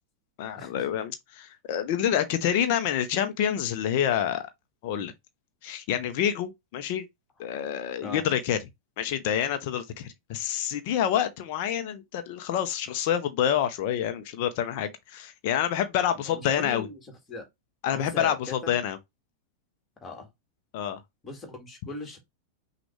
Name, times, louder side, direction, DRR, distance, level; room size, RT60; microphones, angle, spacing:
voice 1, 0.4-4.5 4.8-5.1 5.6-7.1 7.4-8.6 9.0-16.9 17.8-19.0 20.7-21.0, left 9 dB, 50° left, 0.7 m, -27 dB
voice 2, 16.3-17.0 17.3-17.5 17.9-18.8 20.0-20.3 21.2-22.2, left 2 dB, 20° left, 1.9 m, -39 dB
6.0 x 2.4 x 3.3 m
figure-of-eight pair, 90°, 0 cm